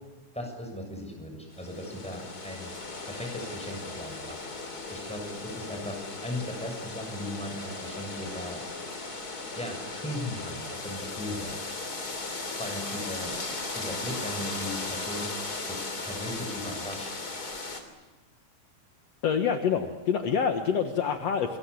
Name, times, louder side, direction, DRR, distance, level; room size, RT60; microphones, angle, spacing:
voice 1, 0.3-2.7 3.0-8.7 9.5-11.6 12.5-13.4 13.7-15.3 15.7-17.1, left 1 dB, ahead, 3 dB, 7.1 m, -38 dB
sound 1, 1.5-17.8, left 3 dB, 30° left, 3.4 m, -37 dB
voice 2, 19.2-21.6, left 7 dB, 65° left, 5 dB, 2.4 m, -26 dB
28.0 x 22.0 x 8.5 m, 1.1 s
omnidirectional pair, 3.4 m